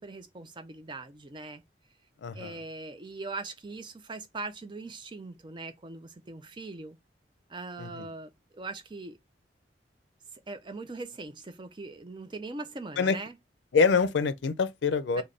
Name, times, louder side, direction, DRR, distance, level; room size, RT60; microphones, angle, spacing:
voice 1, 0.0-1.6 2.3-7.0 7.5-9.2 10.3-13.4 15.2-15.3, right 3 dB, 25° right, 0.4 m, -41 dB
voice 2, 2.2-2.5 7.8-8.1 13.0-13.2 13.7-15.2, left 5 dB, 90° left, 0.4 m, -25 dB
3.3 x 2.2 x 3.7 m
head